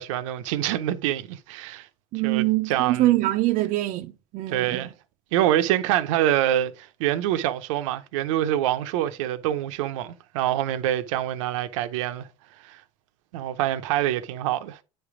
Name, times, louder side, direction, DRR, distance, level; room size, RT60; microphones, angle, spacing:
voice 1, 0.0-1.9 2.2-3.2 4.5-4.9 5.3-12.3 12.6-12.8 13.3-14.8, right 12 dB, 90° right, 0.7 m, -25 dB
voice 2, 2.1-4.8, right 17 dB, 55° right, 0.5 m, -24 dB
9.4 x 3.4 x 4.8 m
supercardioid pair, 125°, 16 cm